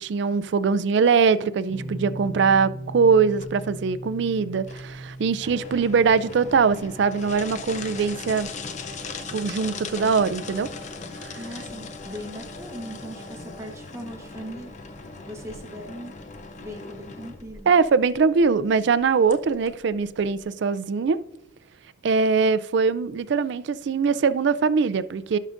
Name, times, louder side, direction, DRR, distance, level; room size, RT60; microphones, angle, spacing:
voice 1, 0.0-8.5 9.3-10.7 17.7-21.2 22.0-25.4, right 5 dB, 60° right, 0.4 m, -22 dB
sound 1, 1.7-14.6, right 1 dB, 45° right, 1.2 m, -41 dB
sound 2, 3.4-20.4, left 4 dB, 35° left, 0.5 m, -39 dB
voice 2, 11.4-14.7 15.3-16.1 16.6-17.8, equal, 15° right, 0.9 m, -39 dB
14.0 x 6.5 x 2.5 m
head